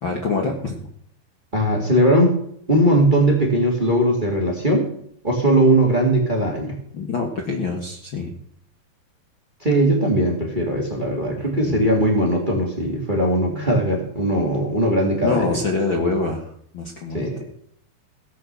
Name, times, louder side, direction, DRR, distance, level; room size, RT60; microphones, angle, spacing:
voice 1, 0.0-0.9 6.9-8.3 11.4-11.8 13.5-13.6 15.2-17.3, left 3 dB, 85° left, 1 dB, 1.1 m, -25 dB
voice 2, 1.5-2.3 2.7-4.9 5.2-6.8 9.6-15.6 17.1-17.5, right 1 dB, 15° right, 1 dB, 1.8 m, -19 dB
17.5 x 8.0 x 7.0 m, 0.69 s
omnidirectional pair, 5.0 m